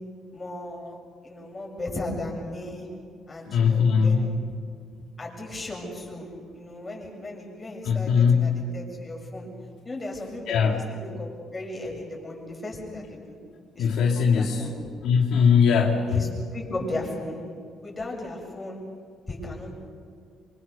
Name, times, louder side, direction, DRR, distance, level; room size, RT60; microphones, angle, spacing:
voice 1, 0.3-1.0 1.2-2.9 3.3-4.3 5.2-6.3 6.5-9.5 9.8-13.4 13.7-13.9 14.1-14.7 16.0-17.4 17.8-18.8 19.3-19.7, left 1 dB, 25° left, -1 dB, 7.8 m, -36 dB
voice 2, 3.5-4.3 7.9-8.5 10.5-10.8 13.8-14.7 15.0-16.3, left 6 dB, 80° left, 1 dB, 2.3 m, -20 dB
27.5 x 24.0 x 6.9 m, 2.1 s
cardioid pair, 100°, 0 cm